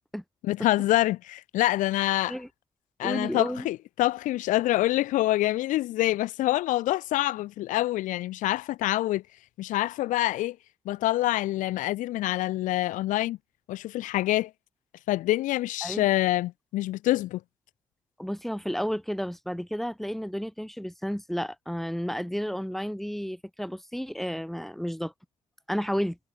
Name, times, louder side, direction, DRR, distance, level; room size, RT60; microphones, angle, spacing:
voice 1, 0.4-2.4 3.0-9.2 9.6-10.6 10.9-13.4 13.7-14.5 15.1-17.4, left 16 dB, 85° left, 0.9 m, -26 dB
voice 2, 3.0-3.7 15.8-16.1 18.2-25.1 25.7-26.2, equal, ahead, 2.7 m, -32 dB
hypercardioid pair, 40°, 13 cm